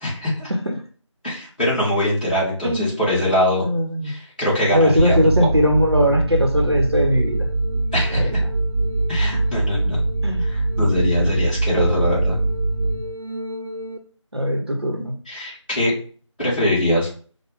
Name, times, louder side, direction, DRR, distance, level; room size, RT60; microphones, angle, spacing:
voice 1, 0.0-0.5 1.2-3.7 4.0-5.5 7.9-8.3 9.1-10.0 10.4-12.4 15.2-15.9 16.4-17.1, left 1 dB, 15° left, -11 dB, 1.5 m, -22 dB
voice 2, 3.6-4.1 4.7-7.5 8.1-8.3 10.2-10.4 11.2-11.4 14.3-15.2, equal, 55° right, 3 dB, 0.8 m, -20 dB
sound 1, 5.0-14.0, right 2 dB, 90° right, 0.8 m, -22 dB
4.6 x 2.2 x 3.4 m, 0.41 s
figure-of-eight pair, 175°, 16 cm